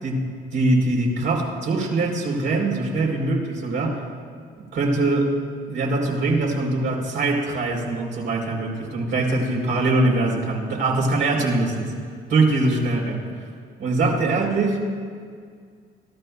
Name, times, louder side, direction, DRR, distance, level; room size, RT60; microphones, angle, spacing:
voice 1, 0.0-4.0 4.6-5.4 5.7-11.9 12.3-13.2 13.8-14.8, right 2 dB, 75° right, -2 dB, 3.6 m, -22 dB
24.5 x 13.0 x 2.3 m, 2.1 s
cardioid pair, 90°, 20 cm